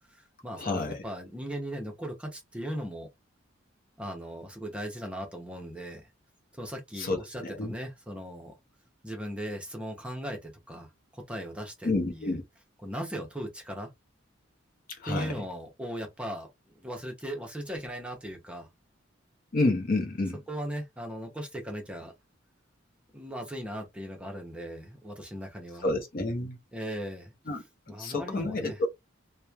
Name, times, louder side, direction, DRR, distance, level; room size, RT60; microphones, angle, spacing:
voice 1, 0.0-3.1 4.0-6.0 6.5-8.5 9.0-12.4 12.8-13.9 15.0-16.5 16.8-18.7 20.5-22.1 23.1-25.9 26.7-27.3 27.9-28.8, equal, 5° right, 0.6 m, -38 dB
voice 2, 0.6-1.0 7.0-7.7 11.8-12.4 15.0-15.3 19.5-20.4 25.8-26.6 27.5-28.9, left 2 dB, 45° left, 0.6 m, -29 dB
2.9 x 2.1 x 2.3 m
head